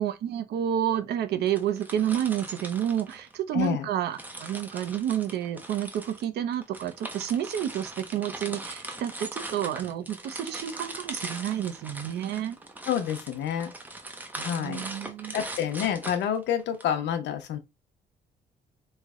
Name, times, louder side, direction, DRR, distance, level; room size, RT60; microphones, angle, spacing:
voice 1, 0.0-12.6 14.4-15.4, right 10 dB, 70° right, 0.5 m, -30 dB
sound 1, 1.5-3.7 4.1-16.8, right 2 dB, 10° right, 0.5 m, -40 dB
voice 2, 3.5-3.9 12.9-13.7 14.4-14.8 15.3-17.6, left 9 dB, 85° left, 0.6 m, -28 dB
3.2 x 2.0 x 3.5 m
cardioid pair, 150°, 18 cm